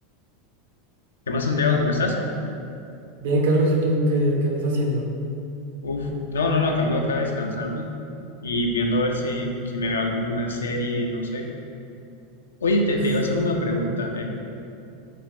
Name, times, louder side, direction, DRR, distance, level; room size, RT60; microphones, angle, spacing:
voice 1, 1.3-2.2 5.8-7.9 8.4-11.5 12.6-14.2, left 2 dB, 85° left, 2 dB, 0.3 m, -24 dB
voice 2, 3.2-5.0, right 1 dB, 70° right, -1 dB, 0.5 m, -21 dB
2.6 x 2.4 x 3.2 m, 2.6 s
hypercardioid pair, 90°, 0 cm